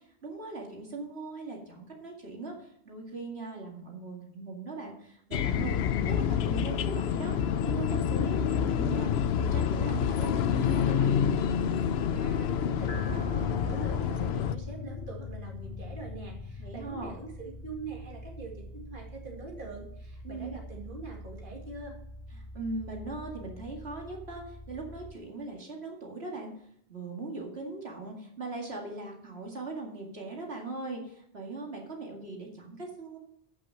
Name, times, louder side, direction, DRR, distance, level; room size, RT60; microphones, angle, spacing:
voice 1, 0.2-5.8 6.0-7.3 7.7-11.2 16.6-17.1 20.2-20.6 22.3-26.5 26.9-33.2, right 3 dB, 75° right, 0 dB, 2.5 m, -39 dB
sound 1, 5.3-14.6, left 8 dB, 75° left, 0.8 m, -28 dB
voice 2, 12.1-21.9, right 4 dB, 50° right, -1 dB, 2.3 m, -43 dB
sound 2, 12.7-25.1, left 3 dB, 50° left, 1.5 m, -41 dB
14.0 x 6.2 x 5.7 m, 0.68 s
omnidirectional pair, 1.1 m